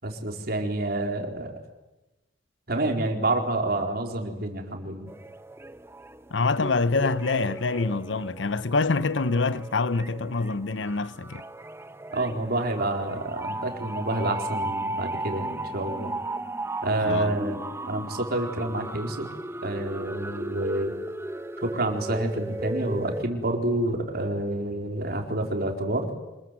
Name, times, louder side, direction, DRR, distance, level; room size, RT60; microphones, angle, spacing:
voice 1, 0.0-1.6 2.7-5.1 12.1-16.1 16.8-17.6 17.9-19.3 19.6-20.9 21.6-26.1, right 2 dB, 55° right, 4.3 m, -28 dB
sound 1, 5.1-23.2, right 1 dB, 15° right, 0.9 m, -36 dB
voice 2, 6.3-11.4 17.1-17.4, left 3 dB, 80° left, 0.8 m, -25 dB
26.5 x 21.5 x 9.3 m
head